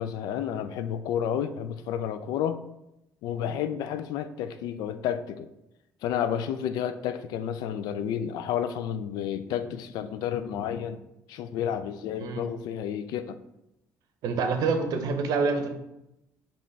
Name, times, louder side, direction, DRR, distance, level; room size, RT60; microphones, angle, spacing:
voice 1, 0.0-2.6 3.2-5.5 6.0-11.0 11.3-13.4, left 9 dB, 75° left, 11 dB, 0.4 m, -31 dB
voice 2, 14.2-15.7, right 4 dB, 70° right, 6 dB, 0.7 m, -26 dB
5.2 x 3.0 x 3.3 m, 0.87 s
supercardioid pair, 75°, 7 cm